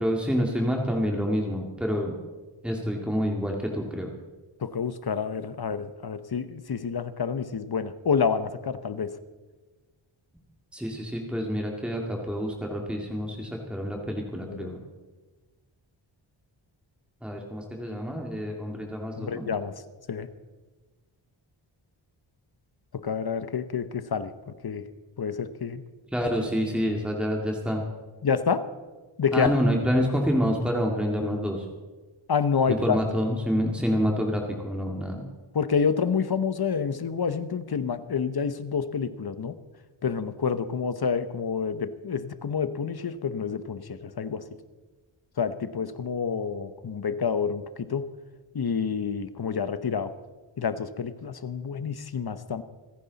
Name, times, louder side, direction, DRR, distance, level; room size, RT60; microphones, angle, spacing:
voice 1, 0.0-2.1 2.6-4.1 10.7-14.8 17.2-19.5 26.1-27.8 29.3-31.7 32.7-35.2, equal, ahead, 0 dB, 2.3 m, -27 dB
voice 2, 4.6-9.2 14.4-14.7 19.2-19.7 20.1-20.3 22.9-24.8 25.2-25.8 28.2-28.6 29.2-29.5 32.3-33.0 35.5-39.5 40.0-44.4 45.4-48.1 48.5-50.1 50.6-52.6, left 6 dB, 50° left, 12 dB, 1.0 m, -28 dB
26.0 x 10.0 x 4.1 m, 1.3 s
cardioid pair, 60°, 49 cm